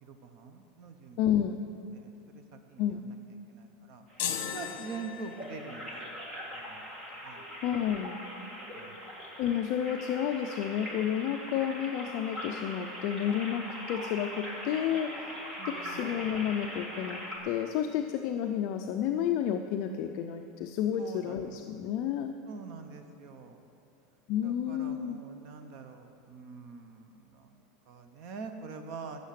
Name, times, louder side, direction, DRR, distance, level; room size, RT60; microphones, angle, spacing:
voice 1, 0.0-1.2 1.9-2.4 2.7-3.1 3.5-4.0 4.5-6.2 6.5-6.9 7.2-7.4 8.8-9.0 15.6-16.2 21.0-21.5 22.5-23.6 24.4-27.6 27.9-29.2, right 5 dB, 40° right, 6 dB, 0.8 m, -45 dB
voice 2, 1.2-1.6 2.8-3.0 7.6-8.2 9.4-15.1 15.7-22.3 24.3-25.2, left 9 dB, 40° left, 5 dB, 0.4 m, -31 dB
sound 1, 4.1-17.4, equal, 15° right, 1.6 m, -42 dB
sound 2, 4.2-5.7, left 9 dB, 60° left, 1.2 m, -36 dB
14.5 x 6.4 x 6.6 m, 2.8 s
supercardioid pair, 180°, 0 cm